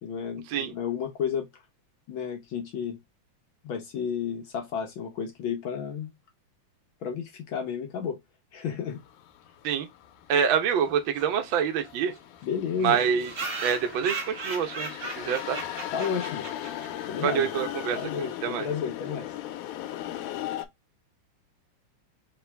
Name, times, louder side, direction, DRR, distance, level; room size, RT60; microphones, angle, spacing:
voice 1, 0.0-1.5 2.1-3.0 3.6-6.1 7.0-8.2 8.5-9.0 12.4-13.0 15.9-16.5 17.1-17.5 17.9-19.3, left 7 dB, 70° left, 1.2 m, -32 dB
sound 1, 9.0-20.7, left 12 dB, 90° left, 2.1 m, -38 dB
voice 2, 10.3-12.1 12.8-13.3 13.6-15.6 17.2-18.7, right 7 dB, 70° right, 1.2 m, -26 dB
sound 2, 11.1-11.2 11.5-11.6 11.8-11.9 12.1-12.2 12.8-17.1, right 3 dB, 40° right, 1.6 m, -37 dB
4.5 x 3.0 x 3.4 m
omnidirectional pair, 3.4 m